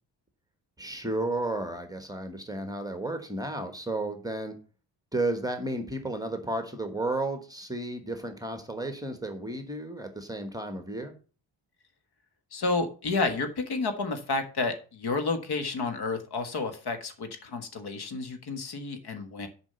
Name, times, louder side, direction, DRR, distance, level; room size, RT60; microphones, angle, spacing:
voice 1, 0.8-4.6 5.1-11.1, right 2 dB, 10° right, 6 dB, 1.1 m, -33 dB
voice 2, 12.5-19.5, left 3 dB, 60° left, 7 dB, 1.6 m, -30 dB
7.1 x 5.1 x 6.7 m, 0.37 s
wide cardioid pair, 165°, 45 cm